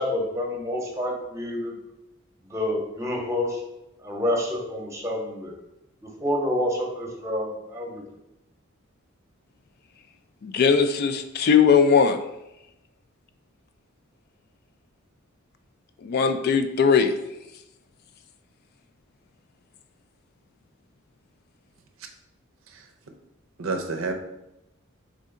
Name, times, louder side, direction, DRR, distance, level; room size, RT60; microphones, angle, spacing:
voice 1, 0.0-1.7 2.5-3.6 4.0-5.5 6.0-8.0, left 1 dB, 15° right, 0 dB, 0.8 m, -28 dB
voice 2, 10.4-12.2 16.0-17.1, left 6 dB, 50° left, 8 dB, 0.3 m, -19 dB
voice 3, 23.6-24.1, right 3 dB, 75° right, 5 dB, 0.6 m, -29 dB
3.7 x 3.3 x 3.7 m, 0.89 s
head